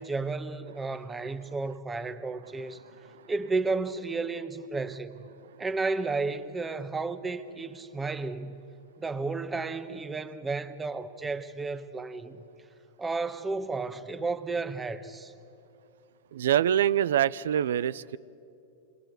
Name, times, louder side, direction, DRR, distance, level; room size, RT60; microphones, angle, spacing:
voice 1, 0.0-2.8 3.3-5.1 5.6-8.6 9.0-12.5 13.0-15.3, right 3 dB, 15° right, 1.3 m, -32 dB
voice 2, 16.3-18.2, right 10 dB, 75° right, 0.5 m, -25 dB
27.5 x 23.0 x 8.1 m
hypercardioid pair, 115°, 0 cm